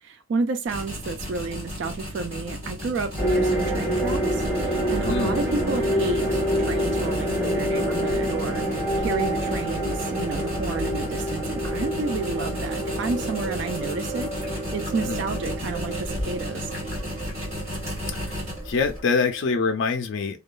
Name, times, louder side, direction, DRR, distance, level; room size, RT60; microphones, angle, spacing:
voice 1, 0.0-16.7, right 4 dB, 55° right, 0.3 m, -31 dB
sound 1, 0.7-19.0, equal, 30° right, 1.5 m, -34 dB
sound 2, 3.2-19.7, right 1 dB, 5° right, 1.3 m, -27 dB
voice 2, 5.0-5.4 15.1-15.2 18.2-18.4 18.7-20.4, left 5 dB, 60° left, 0.4 m, -25 dB
2.8 x 2.2 x 2.3 m
head